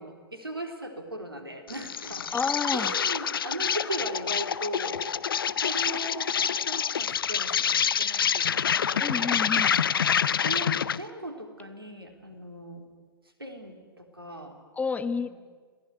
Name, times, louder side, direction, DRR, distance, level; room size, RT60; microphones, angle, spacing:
voice 1, 0.0-2.3 2.7-6.3 6.6-8.5 8.9-9.4 10.3-12.9 13.4-14.6 15.2-15.3, right 1 dB, 90° right, 5 dB, 3.8 m, -38 dB
Insect, 1.7-11.1, left 7 dB, 70° left, 0.8 m, -27 dB
voice 2, 2.3-2.9 9.0-9.8 14.8-15.3, left 5 dB, 10° left, 13 dB, 1.1 m, -29 dB
27.5 x 19.0 x 9.8 m, 1.5 s
figure-of-eight pair, 105°, 12 cm